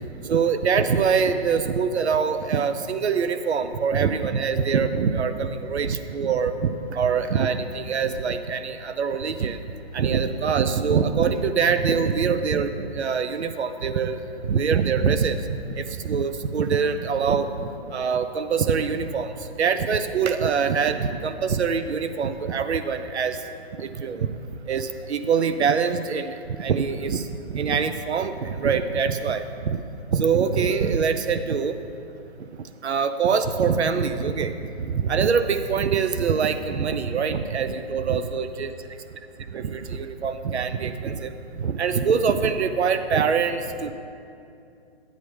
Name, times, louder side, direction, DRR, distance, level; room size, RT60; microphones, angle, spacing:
voice 1, 0.2-9.6 9.9-19.3 19.6-23.4 23.8-24.3 24.7-29.8 30.1-31.8 32.8-38.7 39.5-43.9, right 6 dB, 85° right, 10 dB, 0.6 m, -24 dB
10.5 x 9.3 x 3.2 m, 2.6 s
hypercardioid pair, 155°, 32 cm